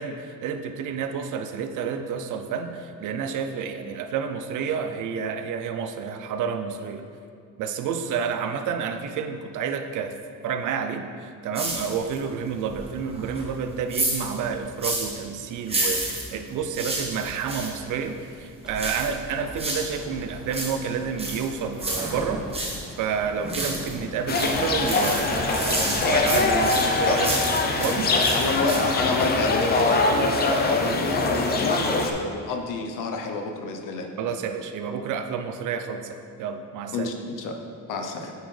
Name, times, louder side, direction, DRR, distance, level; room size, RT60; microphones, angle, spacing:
voice 1, 0.0-7.1 7.6-10.2 10.4-22.5 23.0-27.4 27.8-28.2 34.2-37.1, right 6 dB, 65° right, 7 dB, 0.5 m, -30 dB
sound 1, 11.5-12.3 12.6-15.2 15.6-17.8 18.7-20.0 20.3-22.8 23.2-24.0 24.3-27.9 28.2-29.0 29.3-29.4, right 2 dB, 15° right, 1.1 m, -30 dB
sound 2, 18.6-26.7, left 1 dB, ahead, 0.7 m, -40 dB
sound 3, 24.3-32.1, left 3 dB, 30° left, 0.4 m, -23 dB
voice 2, 28.3-34.1 36.9-37.5 37.9-38.3, left 3 dB, 70° left, 3 dB, 0.8 m, -29 dB
9.0 x 4.2 x 3.3 m, 2.3 s
cardioid pair, 155°, 33 cm